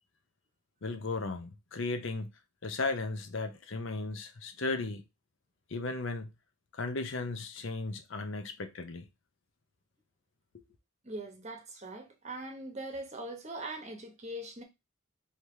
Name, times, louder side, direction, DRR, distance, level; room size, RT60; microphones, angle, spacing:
voice 1, 0.8-2.3 2.6-5.0 5.7-6.3 6.7-9.1 10.5-10.6, left 3 dB, 65° left, 0.6 m, -35 dB
voice 2, 11.0-14.6, right 1 dB, 35° right, 0.9 m, -41 dB
3.3 x 2.9 x 4.5 m
head